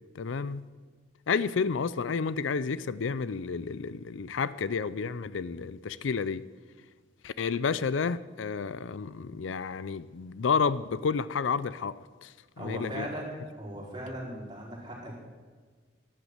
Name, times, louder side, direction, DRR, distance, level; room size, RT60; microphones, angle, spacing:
voice 1, 0.2-0.6 1.3-6.4 7.2-12.3 12.6-13.1, left 5 dB, 80° left, 0.5 m, -30 dB
voice 2, 12.6-15.2, right 1 dB, 25° right, 4.6 m, -38 dB
11.5 x 11.0 x 8.0 m
head